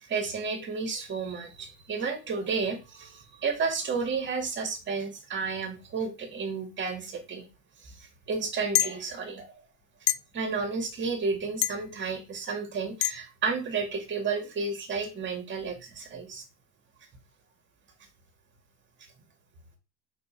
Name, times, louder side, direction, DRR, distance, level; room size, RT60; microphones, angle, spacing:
voice 1, 0.0-7.4 7.8-9.5 10.3-16.4, right 4 dB, 30° right, 5 dB, 2.1 m, -32 dB
sound 1, 8.7-8.9 10.1-10.2 11.6-11.8 13.0-13.1, left 16 dB, 65° left, 0.5 m, -24 dB
4.4 x 4.3 x 5.6 m, 0.28 s
cardioid pair, 140°, 38 cm